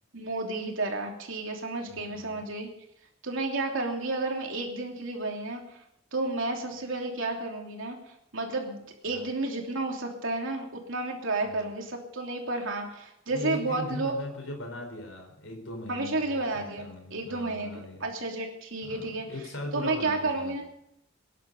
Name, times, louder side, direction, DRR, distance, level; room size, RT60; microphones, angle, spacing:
voice 1, 0.1-2.7 3.2-5.6 6.1-8.0 8.3-14.2 15.9-16.9 17.1-19.3 19.7-20.6, right 2 dB, 70° right, 1 dB, 3.1 m, -31 dB
voice 2, 1.9-2.5 6.7-6.8 9.1-9.3 11.5-11.7 13.3-18.1 18.8-20.6, left 1 dB, 75° left, 2 dB, 4.4 m, -40 dB
20.5 x 11.0 x 5.4 m, 0.79 s
head